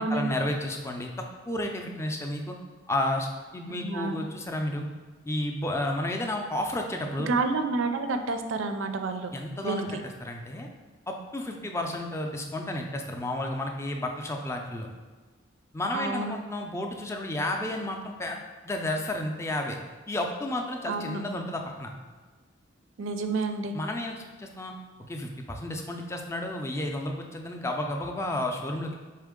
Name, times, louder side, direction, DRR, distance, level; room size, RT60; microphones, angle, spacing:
voice 1, 0.0-2.6 2.9-3.3 3.5-4.9 5.3-7.3 9.3-10.7 11.1-14.9 15.7-18.4 18.6-19.8 20.1-21.9 23.7-24.7 25.0-28.9, left 1 dB, 15° left, 2 dB, 0.4 m, -32 dB
voice 2, 3.7-4.2 7.3-9.3 9.6-10.0 15.9-16.3 20.9-21.2 23.0-23.7, right 3 dB, 85° right, 7 dB, 0.4 m, -29 dB
4.4 x 3.3 x 3.6 m, 1.4 s
head